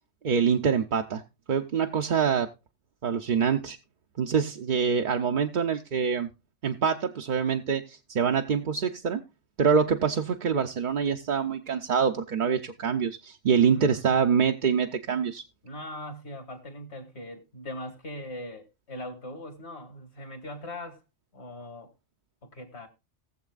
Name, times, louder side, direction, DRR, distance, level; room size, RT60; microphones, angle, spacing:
voice 1, 0.2-1.2 1.5-2.5 3.0-3.8 4.2-6.3 6.6-9.2 9.6-15.4, right 6 dB, 50° right, 0.7 m, -25 dB
voice 2, 13.5-14.4 15.6-21.0 21.3-21.9 22.4-22.9, equal, 65° left, 2.4 m, -40 dB
19.5 x 7.3 x 2.4 m
omnidirectional pair, 1.2 m